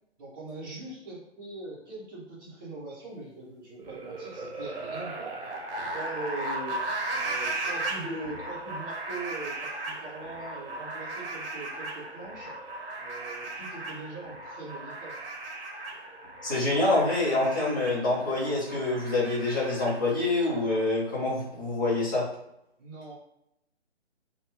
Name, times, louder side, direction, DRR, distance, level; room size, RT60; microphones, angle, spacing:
voice 1, 0.2-12.6 13.0-15.2 22.8-23.2, right 2 dB, 20° right, -9 dB, 1.0 m, -41 dB
sound 1, 3.8-20.8, right 2 dB, 55° right, 0.8 m, -37 dB
voice 2, 16.4-22.2, left 2 dB, 20° left, -8 dB, 0.6 m, -26 dB
2.6 x 2.4 x 3.0 m, 0.80 s
hypercardioid pair, 165°, 35 cm